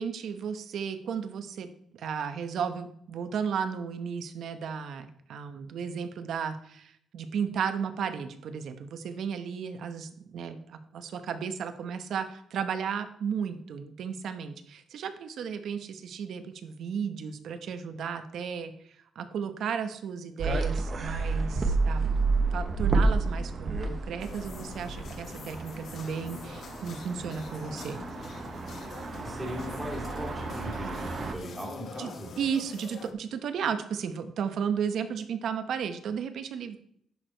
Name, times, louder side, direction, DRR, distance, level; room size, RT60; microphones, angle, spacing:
voice 1, 0.0-22.2 22.5-28.0 32.0-32.1 32.4-36.8, right 7 dB, 65° right, 9 dB, 0.9 m, -34 dB
sound 1, 20.4-31.3, right 3 dB, 40° right, 1.0 m, -30 dB
sound 2, 24.2-33.1, left 7 dB, 50° left, 0.6 m, -45 dB
voice 2, 29.2-32.3, equal, 10° right, -2 dB, 2.7 m, -38 dB
11.0 x 4.9 x 4.5 m, 0.68 s
cardioid pair, 140°, 0 cm